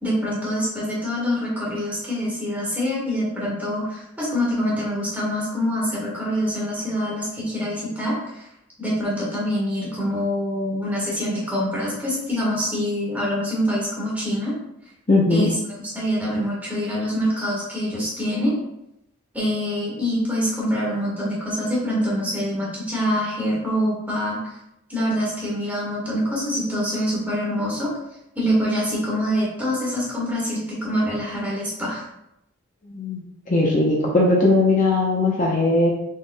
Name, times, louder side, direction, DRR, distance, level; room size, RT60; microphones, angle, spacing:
voice 1, 0.0-8.5 8.8-14.5 15.3-15.6 15.9-18.6 19.3-24.6 24.9-27.9 28.3-32.0, equal, 5° right, -5 dB, 1.4 m, -25 dB
voice 2, 15.1-15.5 32.9-35.9, left 2 dB, 35° left, -3 dB, 0.7 m, -19 dB
6.5 x 3.5 x 2.2 m, 0.82 s
head